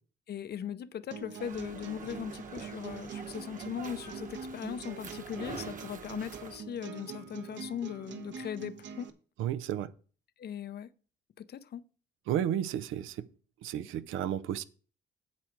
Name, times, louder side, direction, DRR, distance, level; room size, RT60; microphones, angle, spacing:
voice 1, 0.3-9.1 10.4-10.9 11.4-11.8, left 9 dB, 55° left, 0.6 m, -39 dB
sound 1, 1.1-9.1, right 6 dB, 65° right, 1.1 m, -44 dB
sound 2, 1.4-6.6, right 5 dB, 40° right, 1.3 m, -46 dB
voice 2, 9.4-9.9 12.3-13.3 13.6-14.6, right 10 dB, 85° right, 0.6 m, -32 dB
8.3 x 7.6 x 4.6 m
cardioid pair, 90°, 20 cm